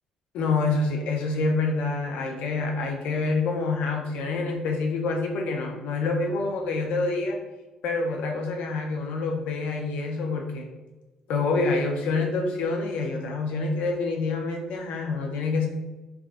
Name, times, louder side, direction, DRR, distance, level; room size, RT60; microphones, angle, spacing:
voice 1, 0.3-7.4 7.8-10.7 11.3-15.7, left 3 dB, 80° left, 1 dB, 0.4 m, -27 dB
3.3 x 2.3 x 2.4 m, 1.1 s
cardioid pair, 140°, 2 cm